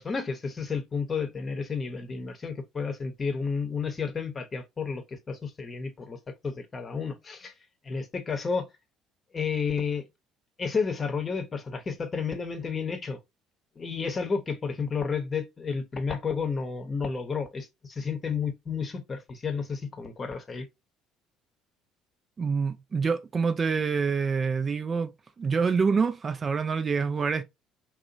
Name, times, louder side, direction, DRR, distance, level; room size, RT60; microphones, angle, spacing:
voice 1, 0.0-6.2 6.4-7.5 7.8-8.7 9.3-10.1 10.6-13.2 13.8-20.7, left 5 dB, 35° left, 0.7 m, -31 dB
voice 2, 22.4-25.1 25.4-27.4, right 5 dB, 35° right, 0.3 m, -26 dB
2.8 x 2.1 x 2.5 m
figure-of-eight pair, 55°, 0 cm